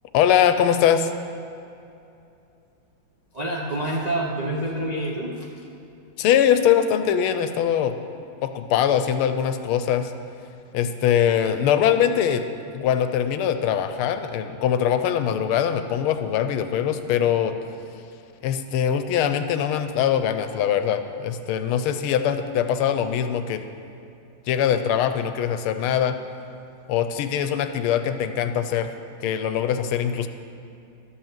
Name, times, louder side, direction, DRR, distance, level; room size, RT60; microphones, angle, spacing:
voice 1, 0.1-1.1 6.2-7.9 8.4-10.1 10.7-12.4 12.7-17.5 18.4-23.6 24.5-26.2 26.9-28.9 29.2-30.3, left 9 dB, 90° left, 9 dB, 1.5 m, -22 dB
voice 2, 3.3-5.5, right 1 dB, 45° right, -3 dB, 0.5 m, -27 dB
12.0 x 5.7 x 7.3 m, 2.6 s
omnidirectional pair, 2.3 m